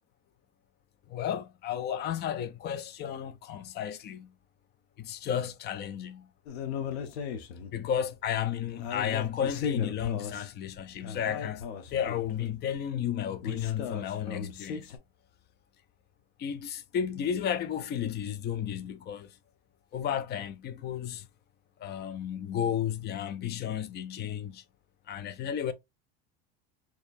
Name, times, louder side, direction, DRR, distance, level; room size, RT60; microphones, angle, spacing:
voice 1, 1.1-4.3 5.0-6.3 7.7-11.6 11.9-14.9 16.4-19.3 19.9-21.3 21.8-24.6 25.1-25.7, left 9 dB, 35° left, 0.5 m, -33 dB
sound 1, 6.5-7.8 8.3-8.4 8.7-10.8 11.0-12.7 13.4-15.0, left 6 dB, 85° left, 0.9 m, -37 dB
4.5 x 3.0 x 2.5 m
supercardioid pair, 125°, 31 cm